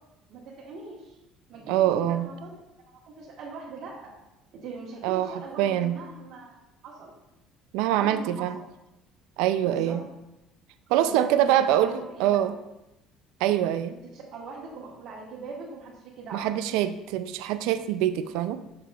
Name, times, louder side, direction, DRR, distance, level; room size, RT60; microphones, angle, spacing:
voice 1, 0.3-1.2 1.5-4.1 4.5-6.5 6.8-7.1 7.9-8.5 9.6-10.0 10.9-12.5 13.9-16.5, right 4 dB, 55° right, -6 dB, 1.3 m, -41 dB
voice 2, 1.7-2.3 5.0-5.3 5.6-6.0 7.7-8.6 9.4-10.0 10.9-12.5 13.4-13.9 16.3-18.6, right 11 dB, 85° right, 11 dB, 0.3 m, -24 dB
7.3 x 6.6 x 2.3 m, 0.95 s
cardioid pair, 150°, 0 cm